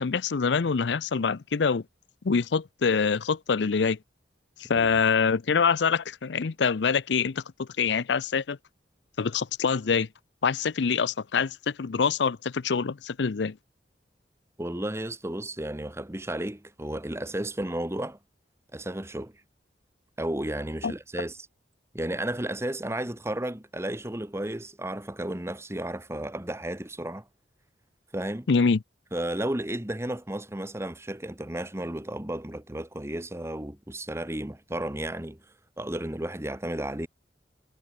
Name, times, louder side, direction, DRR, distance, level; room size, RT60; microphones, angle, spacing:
voice 1, 0.0-1.8 2.2-4.0 4.6-8.6 9.2-10.1 10.4-13.6 20.8-20.9 28.5-28.8, left 5 dB, 80° left, 0.6 m, -25 dB
voice 2, 14.6-18.2 18.7-19.3 20.2-21.5 21.9-27.2 28.1-28.5 29.1-35.4 35.8-37.1, right 1 dB, 15° right, 1.5 m, -33 dB
head